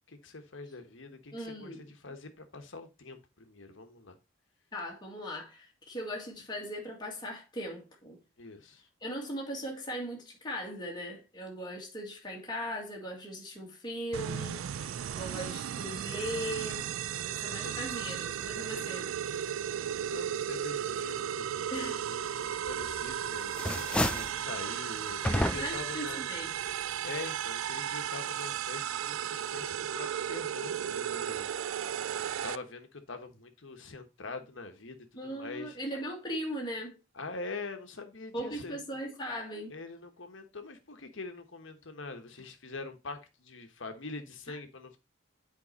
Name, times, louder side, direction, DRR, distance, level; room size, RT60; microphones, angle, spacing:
voice 1, 0.1-4.2 8.4-8.8 14.7-15.2 17.1-18.2 18.5-18.9 19.7-26.2 27.0-31.5 32.4-35.8 37.1-38.8 39.7-45.0, left 3 dB, 65° left, 1.2 m, -44 dB
voice 2, 1.3-1.9 4.7-8.2 9.0-14.6 15.1-16.9 17.4-19.1 21.7-22.0 25.6-26.5 35.2-37.0 38.3-39.7 44.5-44.6, equal, 20° left, 1.9 m, -38 dB
sound 1, 14.1-32.6, right 9 dB, 80° right, 0.4 m, -35 dB
sound 2, 22.7-23.1 23.4-24.4 25.2-25.9, left 1 dB, 5° left, 0.4 m, -31 dB
7.6 x 4.6 x 4.1 m
head